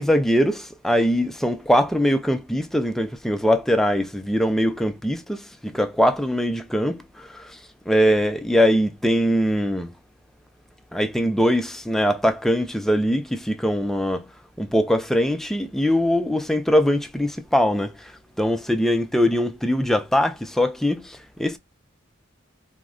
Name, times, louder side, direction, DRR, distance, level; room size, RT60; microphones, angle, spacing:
voice 1, 0.0-7.6 7.9-9.9 10.9-14.3 14.6-18.1 18.4-21.6, equal, ahead, 0.3 m, -22 dB
3.4 x 2.1 x 2.4 m
head